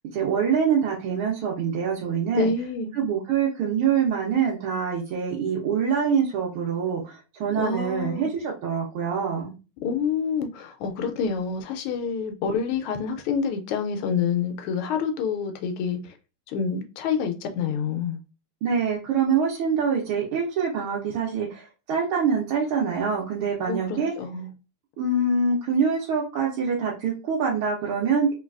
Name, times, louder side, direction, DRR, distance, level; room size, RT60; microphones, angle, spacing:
voice 1, 0.1-2.5 2.9-9.5 18.6-24.1 25.0-28.3, right 6 dB, 85° right, 1.5 m, -25 dB
voice 2, 2.3-2.9 7.6-8.3 9.8-16.1 16.5-18.2 23.7-24.5, left 6 dB, 90° left, 1.4 m, -27 dB
3.8 x 2.3 x 2.3 m
omnidirectional pair, 2.2 m